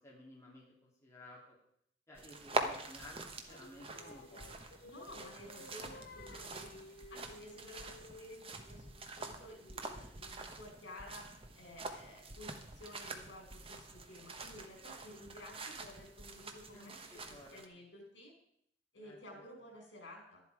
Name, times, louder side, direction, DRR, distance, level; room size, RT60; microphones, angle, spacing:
voice 1, 0.0-1.5 2.1-4.7 5.0-5.1 5.6-6.4 16.7-17.6 19.0-19.4, left 1 dB, 15° left, -5 dB, 2.7 m, -56 dB
sound 1, 2.1-17.7, right 2 dB, 30° right, 1.1 m, -45 dB
Singing, 3.5-8.7, left 2 dB, 55° left, 1.0 m, -55 dB
voice 2, 4.8-6.8 7.1-11.3 11.6-16.9 17.3-18.3 18.9-20.4, left 1 dB, 75° left, 0 dB, 5.6 m, -53 dB
12.0 x 11.0 x 4.8 m, 0.71 s
head